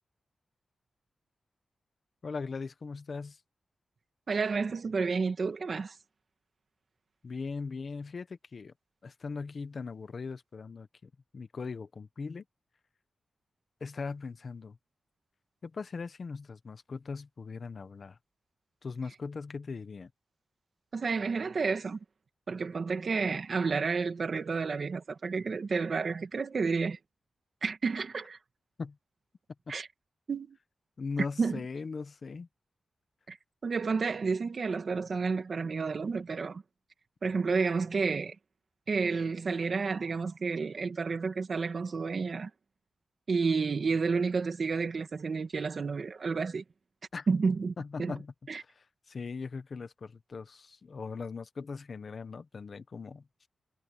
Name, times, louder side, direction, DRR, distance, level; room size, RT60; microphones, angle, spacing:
voice 1, 2.2-3.4 7.2-8.7 9.0-12.4 13.8-14.8 15.6-18.2 18.8-20.1 28.8-29.0 29.7-29.8 31.0-32.5 47.1-47.3 47.8-53.2, left 4 dB, 45° left, 1.3 m, -39 dB
voice 2, 4.3-6.0 20.9-22.0 22.5-27.0 27.6-28.4 29.7-29.9 30.3-30.6 31.4-31.6 33.3-33.4 33.6-36.6 37.2-38.4 38.9-42.5 43.3-46.6 47.3-48.2 48.5-48.6, right 4 dB, 50° right, 2.3 m, -30 dB
wide cardioid pair, 145°, 0 cm